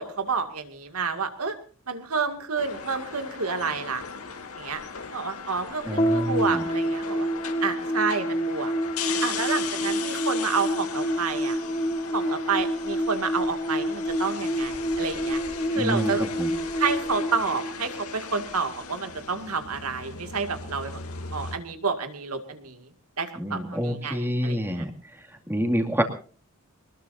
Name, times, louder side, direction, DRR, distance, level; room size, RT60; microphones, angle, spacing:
voice 1, 0.0-1.6 1.9-4.0 4.6-4.8 5.1-7.3 7.6-8.7 9.2-11.6 12.1-15.4 15.7-16.2 16.8-21.0 21.3-22.9 23.2-24.8, right 5 dB, 80° right, 7 dB, 2.3 m, -29 dB
sound 1, 2.6-21.6, left 6 dB, 80° left, 2.6 m, -38 dB
voice 2, 5.9-6.6 15.8-16.5 23.4-24.9 25.5-26.0, equal, 10° right, 3 dB, 2.4 m, -27 dB
sound 2, 6.0-18.5, equal, 25° left, 1.3 m, -28 dB
23.5 x 20.0 x 2.7 m, 0.40 s
head